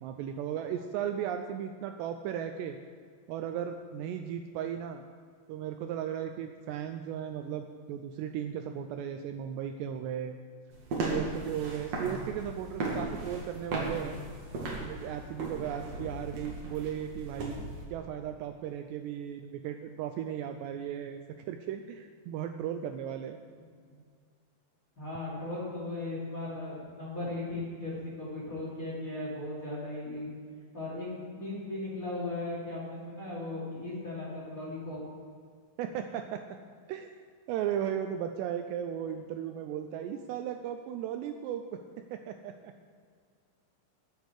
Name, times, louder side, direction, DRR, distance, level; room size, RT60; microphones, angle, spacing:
voice 1, 0.0-2.8 3.3-5.0 5.5-10.4 11.1-14.2 14.8-17.6 17.9-21.2 21.5-23.4 35.8-36.4 36.9-37.1 37.5-41.8 42.1-42.7, right 9 dB, 90° right, 6 dB, 2.5 m, -36 dB
sound 1, 10.7-17.9, right 2 dB, 45° right, 2.4 m, -37 dB
voice 2, 23.6-24.0 25.0-30.3 30.7-35.0, left 2 dB, 20° left, -6 dB, 2.9 m, -37 dB
20.5 x 8.3 x 4.8 m, 2.1 s
omnidirectional pair, 5.5 m